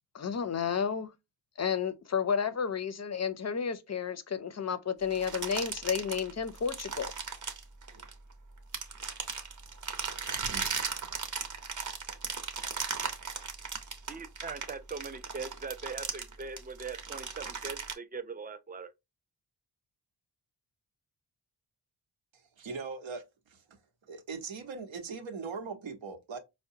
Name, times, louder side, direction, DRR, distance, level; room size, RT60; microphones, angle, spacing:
voice 1, 0.1-1.1 1.6-7.1, left 7 dB, 35° left, 0.5 m, -31 dB
sound 1, 5.1-8.3 8.7-17.9, right 5 dB, 40° right, 0.8 m, -37 dB
voice 2, 14.1-18.9, right 4 dB, 20° right, 0.4 m, -41 dB
voice 3, 22.3-23.8 24.1-26.4, right 4 dB, 80° right, 0.9 m, -40 dB
4.6 x 2.1 x 2.7 m
wide cardioid pair, 80°, 46 cm